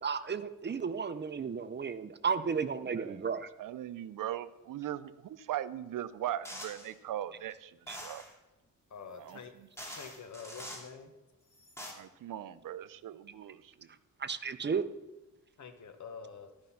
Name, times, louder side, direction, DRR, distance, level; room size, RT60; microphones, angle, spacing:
voice 1, 0.0-3.5 7.9-8.0 14.2-14.8, right 6 dB, 35° right, 12 dB, 0.7 m, -33 dB
voice 2, 2.9-3.2 3.6-8.2 9.2-9.4 11.9-13.9, right 11 dB, 75° right, 14 dB, 0.6 m, -39 dB
sound 1, 6.4-6.9 7.9-8.3 9.3-9.4 9.8-10.9 11.5-11.9, equal, 10° left, 2.6 m, -45 dB
voice 3, 8.9-9.5 9.8-11.1 15.6-16.5, left 6 dB, 60° left, 7 dB, 1.3 m, -47 dB
13.0 x 5.3 x 5.7 m, 1.0 s
cardioid pair, 80°, 33 cm